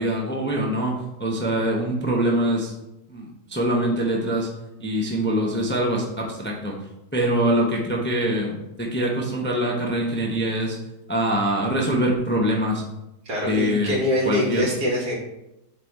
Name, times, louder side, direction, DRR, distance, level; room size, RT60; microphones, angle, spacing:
voice 1, 0.0-2.7 3.1-4.5 4.8-6.7 7.1-10.8 11.1-12.8 13.5-14.0 14.2-14.7, right 1 dB, 10° left, -1 dB, 0.7 m, -24 dB
voice 2, 13.3-15.1, left 1 dB, 65° right, -3 dB, 2.6 m, -24 dB
8.2 x 4.2 x 4.2 m, 0.91 s
omnidirectional pair, 1.7 m